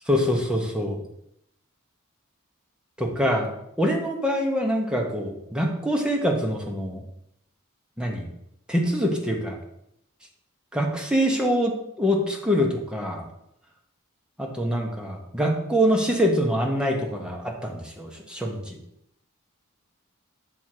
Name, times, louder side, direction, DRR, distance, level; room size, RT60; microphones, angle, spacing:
voice 1, 0.1-1.0 3.0-7.0 8.0-8.3 8.7-9.6 10.7-13.2 14.4-18.8, equal, 5° right, 0 dB, 1.0 m, -25 dB
7.4 x 3.6 x 4.6 m, 0.77 s
head